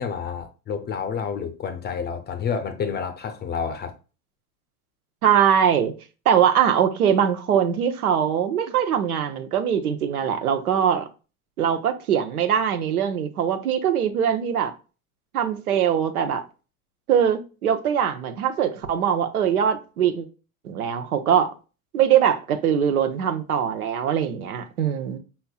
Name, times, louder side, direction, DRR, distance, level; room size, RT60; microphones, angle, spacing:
voice 1, 0.0-3.9, left 6 dB, 25° left, 0.6 m, -29 dB
voice 2, 5.2-5.9 6.3-11.0 11.6-14.7 15.3-16.4 17.1-20.3 20.6-21.5 21.9-25.2, right 8 dB, 85° right, 0.8 m, -22 dB
5.6 x 3.3 x 2.3 m
hypercardioid pair, 90°, 43 cm